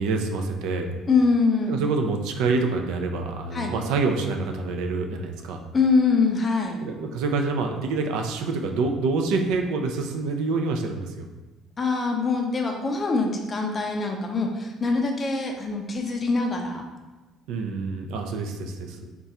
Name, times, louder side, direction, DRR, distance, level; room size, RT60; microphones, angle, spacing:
voice 1, 0.0-0.9 1.7-5.6 6.8-11.3 17.5-19.1, right 3 dB, 85° right, 4 dB, 0.4 m, -26 dB
voice 2, 1.1-1.8 3.5-3.7 5.7-6.8 11.8-16.8, left 4 dB, 25° left, 2 dB, 0.4 m, -23 dB
3.7 x 2.2 x 4.1 m, 1.2 s
cardioid pair, 150°, 0 cm